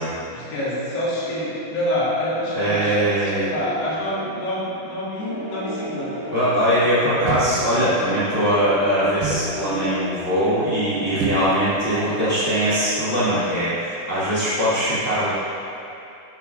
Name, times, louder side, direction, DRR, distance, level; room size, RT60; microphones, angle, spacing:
voice 1, 0.3-6.2, left 1 dB, 75° left, -8 dB, 3.8 m, -26 dB
voice 2, 2.5-3.4 6.3-15.3, equal, 50° left, -13 dB, 0.7 m, -21 dB
sound 1, 5.2-13.4, right 1 dB, 45° right, 1.3 m, -33 dB
sound 2, 7.2-7.8 9.2-9.6 11.2-11.8 12.1-12.2, right 4 dB, 85° right, 2.1 m, -28 dB
11.5 x 7.2 x 2.5 m, 2.8 s
omnidirectional pair, 4.8 m